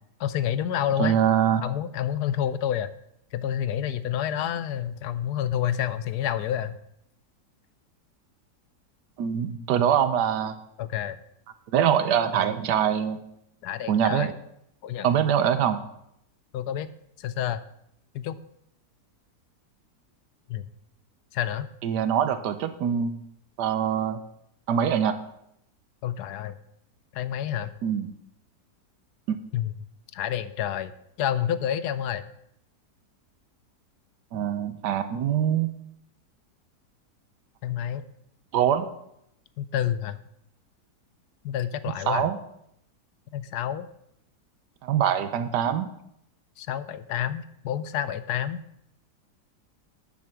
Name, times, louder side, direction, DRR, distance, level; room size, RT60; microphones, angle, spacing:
voice 1, 0.2-1.2 1.6-2.9 3.3-6.8 10.8-11.2 13.6-14.3 14.8-15.1 16.5-16.9 17.2-17.6 18.1-18.4 20.5-20.6 21.3-21.7 26.0-26.5 27.1-27.7 29.5-29.7 30.1-30.9 31.2-32.2 37.6-38.1 39.6-40.2 41.4-42.3 43.3-43.9 46.6-48.6, left 10 dB, 75° left, 14 dB, 1.1 m, -28 dB
voice 2, 1.0-1.6 9.2-10.5 11.7-13.2 13.9-14.3 15.0-15.8 21.8-23.2 23.6-24.2 24.7-25.2 27.8-28.1 29.3-29.4 34.3-35.7 38.5-38.9 42.1-42.4 44.8-45.9, right 9 dB, 80° right, 10 dB, 1.4 m, -24 dB
9.9 x 7.2 x 5.9 m, 0.77 s
omnidirectional pair, 1.8 m